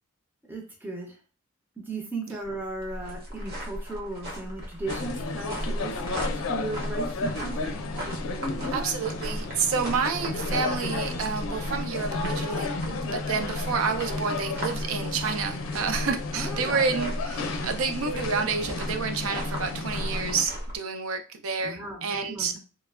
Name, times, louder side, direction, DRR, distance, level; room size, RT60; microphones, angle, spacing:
voice 1, 0.5-1.1 1.8-5.9 6.5-7.7 8.4-8.9 16.3-16.8 21.6-22.6, right 2 dB, 10° right, 0 dB, 0.4 m, -36 dB
sound 1, 2.4-20.8, equal, 50° right, 0.8 m, -36 dB
sound 2, 4.9-20.4, left 3 dB, 75° left, 0.4 m, -33 dB
voice 2, 8.7-12.7 13.0-22.5, right 5 dB, 80° right, 7 dB, 0.4 m, -29 dB
3.1 x 2.1 x 2.3 m, 0.35 s
head